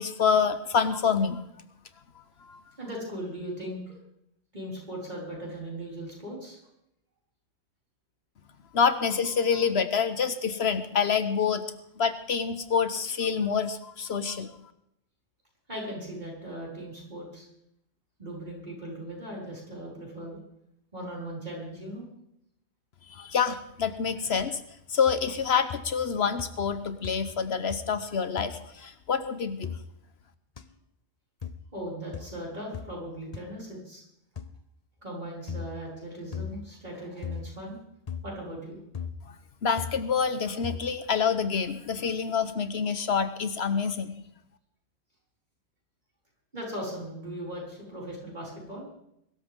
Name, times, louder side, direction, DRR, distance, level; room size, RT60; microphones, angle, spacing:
voice 1, 0.0-1.4 2.5-2.6 8.7-11.6 12.0-14.5 23.1-24.6 24.9-29.7 39.3-39.4 39.6-44.2, left 6 dB, 70° left, 11 dB, 1.2 m, -27 dB
voice 2, 2.8-4.0 4.5-6.6 15.7-17.5 18.2-20.4 20.9-22.1 31.7-34.0 35.0-37.8 38.2-38.8 46.5-48.9, right 1 dB, 40° right, -5 dB, 6.2 m, -38 dB
sound 1, 25.1-25.4 25.7-26.1 26.4-26.8 27.0-27.4 27.7-28.0 28.4-28.6 29.6-29.8 30.6-30.7 31.4-31.6 32.1-32.3 32.7-32.9 33.3-33.4 34.4-34.5 35.5-35.7 36.3-36.6 37.2-37.5 38.1-38.3 38.9-39.2 39.8-40.0 40.6-40.9, left 7 dB, 40° left, 0.9 m, -38 dB
23.0 x 13.0 x 3.7 m, 0.77 s
omnidirectional pair, 1.1 m